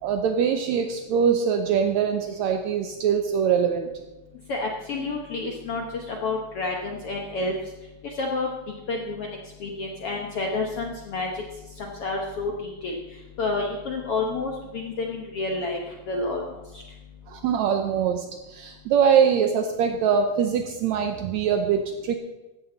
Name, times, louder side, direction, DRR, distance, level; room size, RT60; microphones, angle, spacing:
voice 1, 0.0-3.9 17.3-22.2, right 7 dB, 85° right, 6 dB, 1.6 m, -23 dB
voice 2, 4.5-7.5 8.2-8.5 8.9-9.3 9.6-11.3 11.8-13.0 13.4-15.8 16.1-16.4, left 3 dB, 65° left, 1 dB, 1.5 m, -29 dB
15.0 x 13.0 x 4.0 m, 1.1 s
omnidirectional pair, 4.2 m